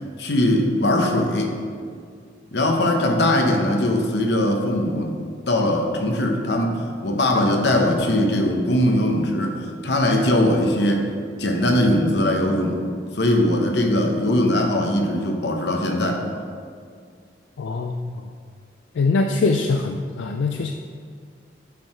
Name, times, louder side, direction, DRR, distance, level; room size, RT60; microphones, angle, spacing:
voice 1, 0.2-1.5 2.5-5.1 5.5-11.1 11.4-12.8 13.1-16.3, left 1 dB, 65° left, 3 dB, 0.9 m, -20 dB
voice 2, 17.6-18.3 18.9-20.7, left 3 dB, 85° left, 5 dB, 0.4 m, -23 dB
9.2 x 4.7 x 4.4 m, 2.1 s
head